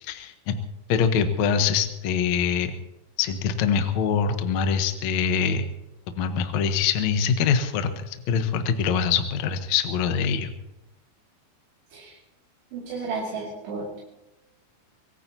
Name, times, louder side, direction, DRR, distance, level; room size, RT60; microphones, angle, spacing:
voice 1, 0.0-0.5 0.9-2.7 3.2-5.7 6.1-10.5, left 6 dB, 75° left, 7 dB, 1.6 m, -24 dB
voice 2, 12.7-14.0, right 4 dB, 80° right, -4 dB, 4.7 m, -33 dB
23.5 x 18.5 x 2.8 m, 0.95 s
omnidirectional pair, 4.9 m